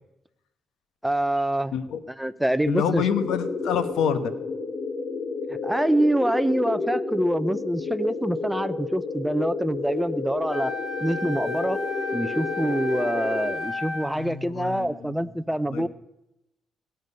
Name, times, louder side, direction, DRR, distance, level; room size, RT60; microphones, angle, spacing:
voice 1, 1.0-1.8 2.2-3.0 5.5-10.7 11.0-11.8 12.1-15.9, right 1 dB, 5° right, 13 dB, 0.6 m, -25 dB
voice 2, 2.7-4.3 14.1-15.2 15.7-15.9, left 8 dB, 80° left, 10 dB, 1.1 m, -27 dB
sound 1, 3.0-13.6, left 4 dB, 45° left, 1.1 m, -31 dB
Wind instrument woodwind instrument, 10.5-14.3, left 3 dB, 30° left, 3.1 m, -33 dB
17.0 x 9.1 x 5.4 m, 0.88 s
cardioid pair, 90°, 0 cm